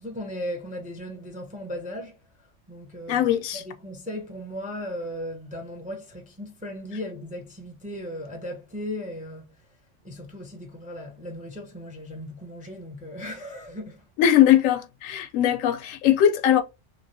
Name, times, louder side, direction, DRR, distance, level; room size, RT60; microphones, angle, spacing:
voice 1, 0.0-2.2 2.7-3.3 3.5-9.5 10.0-14.0, left 1 dB, 10° right, 0.3 m, -36 dB
voice 2, 3.1-3.6 14.2-16.6, left 10 dB, 90° left, 1.0 m, -20 dB
3.0 x 2.7 x 2.6 m
omnidirectional pair, 1.3 m